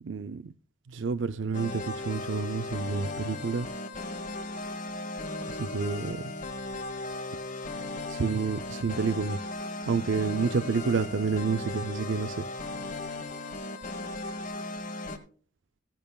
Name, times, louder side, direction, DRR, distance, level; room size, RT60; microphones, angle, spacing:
voice 1, 0.0-0.5 0.9-3.7 5.4-6.3 8.1-9.5 9.8-12.4, right 5 dB, 70° right, 0.5 m, -29 dB
sound 1, 1.5-15.2, left 2 dB, 40° left, 1.4 m, -37 dB
15.5 x 10.5 x 2.3 m
head